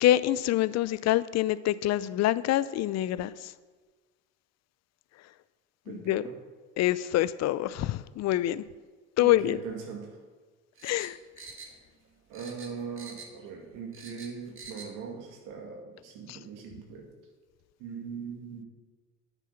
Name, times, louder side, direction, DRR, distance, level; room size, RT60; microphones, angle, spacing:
voice 1, 0.0-3.5 5.9-6.2 6.8-8.6 9.2-9.6 10.8-11.2 16.3-16.4, left 14 dB, 55° left, 0.5 m, -26 dB
voice 2, 5.9-6.3 9.2-10.2 12.3-17.1 17.8-18.6, right 6 dB, 75° right, 2.3 m, -40 dB
sound 1, 10.8-12.1 12.3-13.5 13.7-14.9 15.3-15.4, right 4 dB, 40° right, 2.0 m, -46 dB
9.3 x 8.2 x 5.8 m
supercardioid pair, 75°, 33 cm